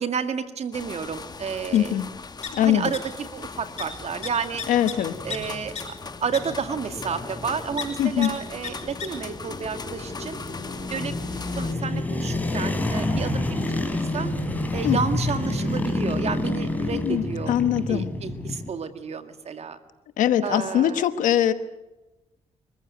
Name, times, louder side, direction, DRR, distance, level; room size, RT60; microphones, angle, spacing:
voice 1, 0.0-2.0 2.6-4.6 5.2-5.9 6.2-10.4 10.9-11.2 11.6-14.3 14.7-17.6 17.9-19.8 20.4-21.1, right 6 dB, 55° right, 9 dB, 2.0 m, -31 dB
sound 1, 0.7-11.7, left 4 dB, 30° left, 1.1 m, -40 dB
voice 2, 1.7-2.1 2.5-2.9 4.7-5.1 8.0-8.3 14.8-15.0 16.9-18.1 20.2-21.5, left 11 dB, 85° left, 12 dB, 1.2 m, -22 dB
sound 2, 1.7-1.8 2.1-3.0 3.3-3.5 3.8-3.9 4.2-5.4 5.8-5.9 6.3-6.4 7.8-7.9 8.2-8.3 8.6-8.7 9.0-9.1, left 7 dB, 60° left, 5.3 m, -33 dB
sound 3, 3.5-18.7, left 2 dB, 10° left, 3.9 m, -30 dB
23.5 x 15.0 x 9.4 m, 1.0 s
cardioid pair, 75°, 13 cm